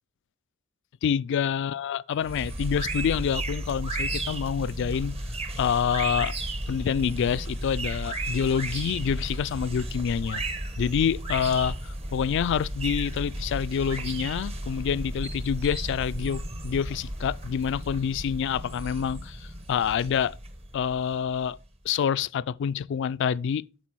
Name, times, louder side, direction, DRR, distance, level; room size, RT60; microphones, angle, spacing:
voice 1, 1.0-5.2 5.6-6.3 6.7-10.4 10.8-20.4 20.7-21.6 21.8-23.6, left 7 dB, 60° left, 0.3 m, -27 dB
sound 1, 2.2-21.7, right 1 dB, 30° right, 1.0 m, -34 dB
8.4 x 6.0 x 4.6 m
head